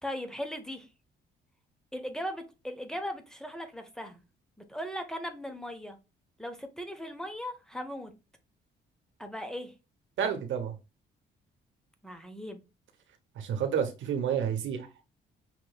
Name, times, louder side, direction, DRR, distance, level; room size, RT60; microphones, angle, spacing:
voice 1, 0.0-0.9 1.9-4.2 4.7-6.0 6.4-8.1 9.2-9.7 12.0-12.6, equal, 5° left, 0.9 m, -38 dB
voice 2, 10.2-10.7 13.4-14.9, right 8 dB, 70° right, 1.0 m, -30 dB
5.8 x 3.0 x 2.3 m
cardioid pair, 90°, 20 cm